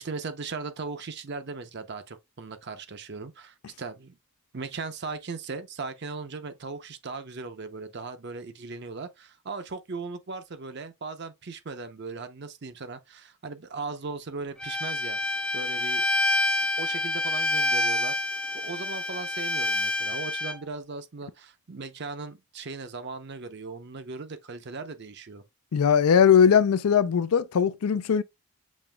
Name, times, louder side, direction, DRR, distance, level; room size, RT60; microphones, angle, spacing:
voice 1, 0.0-4.2 4.5-15.2 15.5-16.0 16.8-18.2 18.5-25.4, right 4 dB, 50° right, 0.6 m, -38 dB
Bowed string instrument, 14.6-20.5, left 2 dB, 5° left, 0.3 m, -27 dB
voice 2, 25.7-28.2, left 7 dB, 85° left, 0.4 m, -20 dB
7.3 x 3.0 x 2.2 m
head